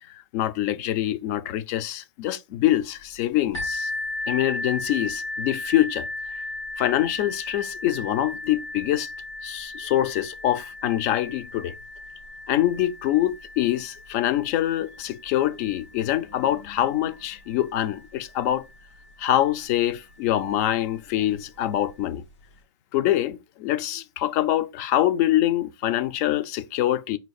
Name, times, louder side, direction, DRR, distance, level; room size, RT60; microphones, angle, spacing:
voice 1, 0.3-3.9 4.3-6.4 6.8-9.1 9.4-11.7 12.5-18.6 19.2-22.2 22.9-27.2, left 13 dB, 35° left, 0.3 m, -25 dB
sound 1, 3.5-19.1 19.9-20.0 20.5-20.6, left 2 dB, 75° left, 2.3 m, -36 dB
4.0 x 2.5 x 4.1 m
hypercardioid pair, 145°, 15 cm